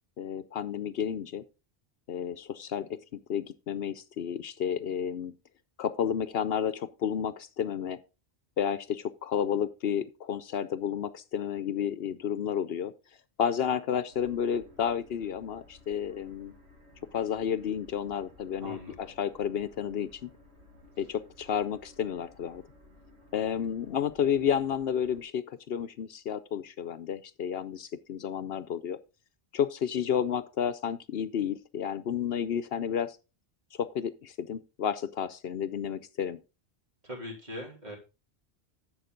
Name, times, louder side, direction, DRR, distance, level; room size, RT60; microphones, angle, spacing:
voice 1, 0.2-1.4 2.1-5.3 5.8-8.0 8.6-12.9 13.4-16.5 17.1-20.3 21.0-22.6 23.3-29.0 29.5-33.2 33.8-36.4, left 8 dB, 70° left, 0.9 m, -31 dB
sound 1, 14.1-25.2, left 2 dB, 85° right, 2.6 m, -57 dB
voice 2, 18.4-19.1 37.0-38.0, left 1 dB, 40° right, 3.8 m, -41 dB
11.0 x 7.7 x 3.8 m
omnidirectional pair, 1.1 m